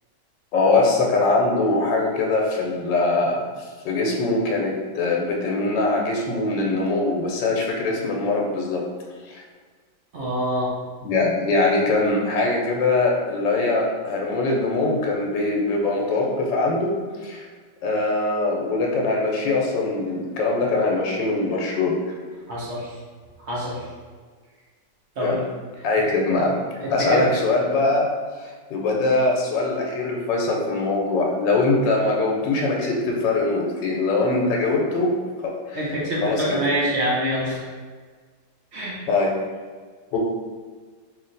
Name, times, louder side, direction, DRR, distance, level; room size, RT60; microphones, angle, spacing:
voice 1, 0.5-3.4 3.8-8.8 9.3-9.4 11.0-16.9 17.2-17.5 17.8-21.9 25.2-25.4 25.8-26.6 26.9-28.0 28.4-35.9 36.2-36.6 39.1-39.3 40.1-40.2, left 3 dB, 85° left, -1 dB, 1.4 m, -22 dB
voice 2, 10.1-10.7 22.5-22.9 23.5-23.8 25.2-25.4 26.8-27.2 35.7-37.6 38.7-39.0, right 1 dB, 60° right, -5 dB, 0.7 m, -25 dB
3.2 x 2.8 x 3.8 m, 1.5 s
omnidirectional pair, 1.9 m